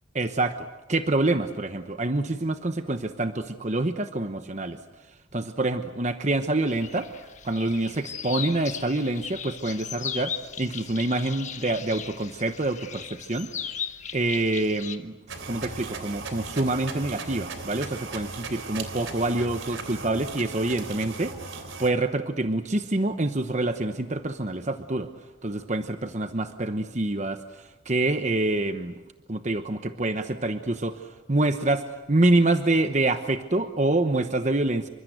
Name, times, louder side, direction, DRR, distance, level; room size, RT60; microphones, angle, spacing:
voice 1, 0.1-4.8 5.3-7.1 7.4-13.5 14.1-15.1 15.5-21.3 21.8-25.1 25.4-28.9 29.3-34.9, right 2 dB, 35° right, 8 dB, 1.0 m, -26 dB
sound 1, 6.7-15.0, left 8 dB, 35° left, 1.4 m, -37 dB
sound 2, 15.3-21.9, right 3 dB, 75° right, 3.3 m, -37 dB
28.0 x 25.0 x 8.0 m, 1.1 s
head